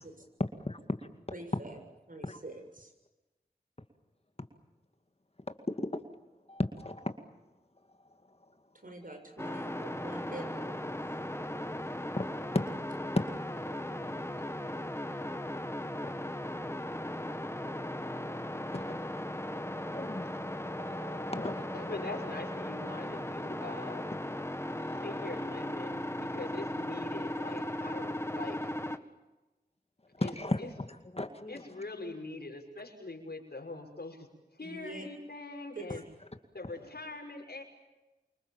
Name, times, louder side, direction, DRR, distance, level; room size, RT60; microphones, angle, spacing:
voice 1, 0.7-1.1 2.3-2.4 5.7-6.0 6.5-7.1 12.2-12.3 12.5-12.7 13.0-13.2 16.0-16.1 18.7-19.3 19.8-20.4 20.8-21.7 24.8-25.3 27.3-27.4 30.2-31.7, left 2 dB, 40° left, 7 dB, 2.2 m, -35 dB
voice 2, 1.3-1.8 2.1-2.9 8.7-10.8 13.4-14.0 34.6-35.1 35.8-36.0, right 2 dB, 55° right, 5 dB, 7.2 m, -46 dB
sound 1, 9.4-29.0, left 1 dB, 15° left, 1.9 m, -37 dB
voice 3, 21.7-24.1 24.9-28.7 30.2-30.3 30.6-30.7 31.5-36.0 36.5-37.6, left 2 dB, 75° left, 3 dB, 5.9 m, -43 dB
28.0 x 25.0 x 7.4 m, 1.1 s
wide cardioid pair, 55°, 17 cm